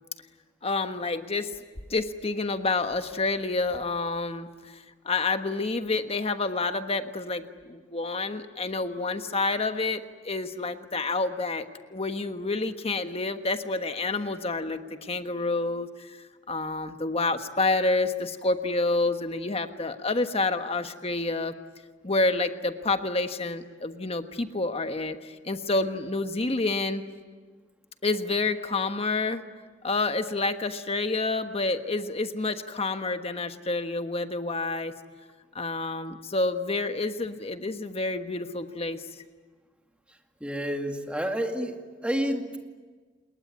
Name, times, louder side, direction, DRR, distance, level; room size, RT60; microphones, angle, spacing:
voice 1, 0.6-1.5 1.9-16.2 16.5-21.5 22.0-27.0 28.0-29.4 29.8-35.0 35.5-39.0, left 3 dB, 35° left, 8 dB, 1.3 m, -28 dB
voice 2, 40.4-41.8 42.0-42.5, equal, 5° right, 3 dB, 2.3 m, -29 dB
28.5 x 21.0 x 9.8 m, 1.4 s
head